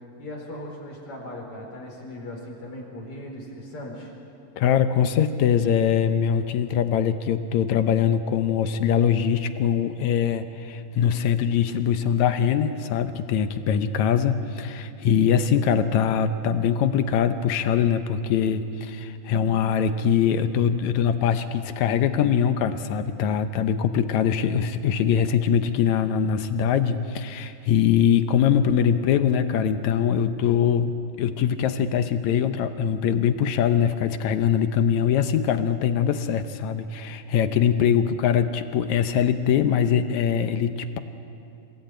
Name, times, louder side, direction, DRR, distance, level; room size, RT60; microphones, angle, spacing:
voice 1, 0.2-4.1, left 1 dB, 50° left, -1 dB, 5.4 m, -38 dB
voice 2, 4.6-41.0, left 8 dB, 75° left, 9 dB, 2.1 m, -22 dB
28.0 x 16.5 x 9.0 m, 2.7 s
omnidirectional pair, 3.4 m